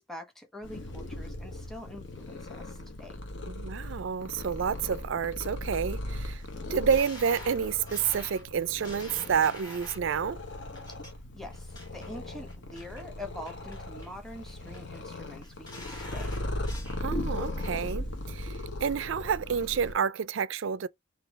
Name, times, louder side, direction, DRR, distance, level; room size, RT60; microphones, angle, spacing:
voice 1, 0.0-3.2 11.3-16.4, left 1 dB, ahead, 0.9 m, -45 dB
Purr, 0.6-19.9, left 1 dB, 60° left, 1.0 m, -38 dB
voice 2, 3.4-6.4 6.7-10.4 17.0-20.9, right 7 dB, 70° right, 0.4 m, -29 dB
sound 1, 6.9-10.1 10.7-11.1 11.5-12.1 12.5-13.0 13.4-14.1 14.4-15.0 15.4-17.0 17.4-18.0 18.4-18.5, left 2 dB, 20° left, 1.5 m, -47 dB
3.8 x 2.8 x 4.7 m
head